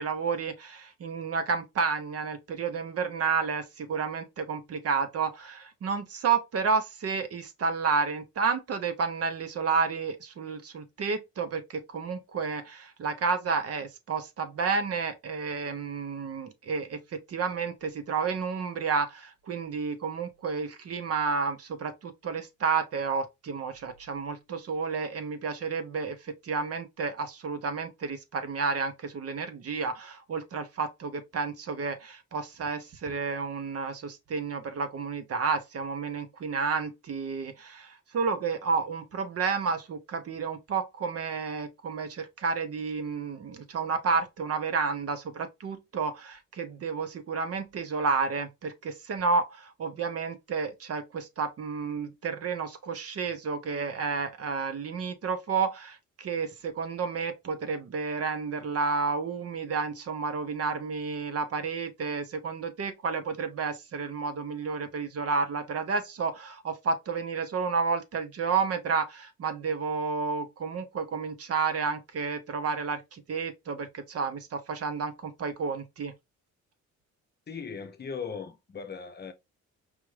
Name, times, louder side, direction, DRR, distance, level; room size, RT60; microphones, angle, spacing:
voice 1, 0.0-76.1, right 5 dB, 50° right, 0.8 m, -31 dB
voice 2, 77.5-79.3, left 6 dB, 35° left, 0.7 m, -38 dB
4.9 x 2.6 x 3.2 m
cardioid pair, 90°, 30 cm